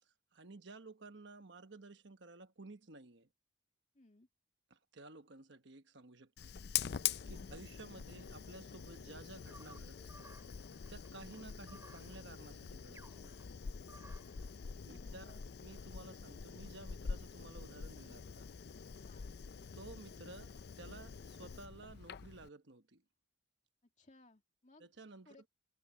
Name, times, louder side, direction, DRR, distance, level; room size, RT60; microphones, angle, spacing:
voice 1, 0.3-3.3 4.7-6.5 6.8-10.3 10.9-13.4 14.9-18.4 19.7-23.0 24.8-25.5, right 2 dB, 60° right, 1.2 m, -54 dB
voice 2, 3.9-4.3 7.3-7.5 14.8-15.4 19.0-19.3 24.0-24.9 25.3-25.5, left 2 dB, 35° left, 2.4 m, -63 dB
Fire, 6.4-22.5, left 8 dB, 50° left, 0.4 m, -45 dB
sound 1, 9.5-14.5, right 2 dB, 15° right, 4.8 m, -60 dB
head